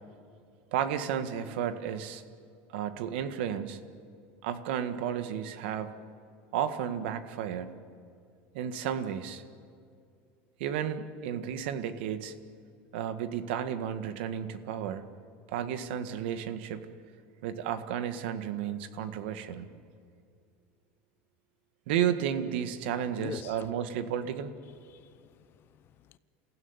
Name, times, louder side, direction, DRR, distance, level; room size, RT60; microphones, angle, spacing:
voice 1, 0.7-2.2 2.7-3.8 4.4-6.0 6.5-7.7 8.5-9.4 10.6-12.4 12.9-15.1 15.5-16.8 17.4-19.7 21.9-24.5, right 9 dB, 85° right, 1.7 m, -32 dB
voice 2, 23.2-23.7 24.9-26.2, left 11 dB, 40° left, 0.7 m, -44 dB
30.0 x 16.0 x 9.7 m
supercardioid pair, 145°, 6 cm